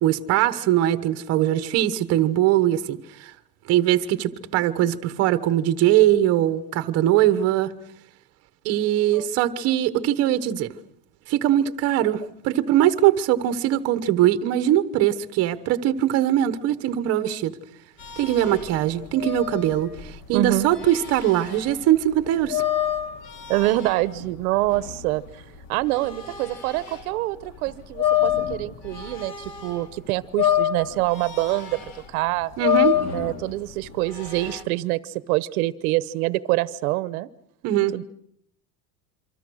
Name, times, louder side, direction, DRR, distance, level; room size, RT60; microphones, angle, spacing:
voice 1, 0.0-3.3 3.7-7.7 8.6-10.7 11.3-17.5 18.2-22.6 32.6-33.0 37.6-37.9, right 12 dB, 35° right, 1.2 m, -21 dB
sound 1, 18.0-27.1 27.5-29.9 30.2-34.6, left 11 dB, 35° left, 2.7 m, -28 dB
voice 2, 20.3-20.7 23.5-25.2 25.7-31.8 32.1-32.5 33.1-37.3 37.9-38.0, right 18 dB, 75° right, 1.0 m, -25 dB
27.5 x 25.0 x 6.3 m
cardioid pair, 180°, 44 cm